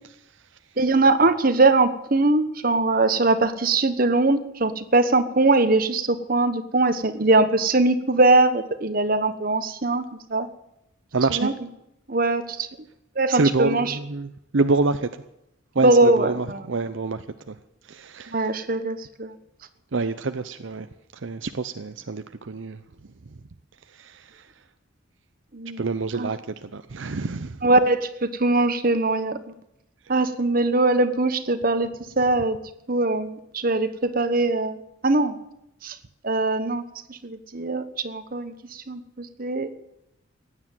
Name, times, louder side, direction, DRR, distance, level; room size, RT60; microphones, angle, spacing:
voice 1, 0.8-10.0 10.3-10.5 11.4-11.5 12.1-12.7 13.2-13.9 15.8-16.6 18.3-19.3 25.5-25.8 26.1-26.3 27.6-29.4 30.1-31.9 32.2-32.6 32.9-34.8 35.0-35.4 35.8-35.9 36.2-36.8 37.1-39.7, right 2 dB, 45° right, 10 dB, 1.2 m, -21 dB
voice 2, 11.1-11.5 13.3-15.2 15.7-17.5 17.9-18.5 19.9-20.9 21.1-22.8 23.9-24.5 25.8-27.6, right 3 dB, 70° right, 10 dB, 0.7 m, -27 dB
16.0 x 9.7 x 9.2 m, 0.84 s
head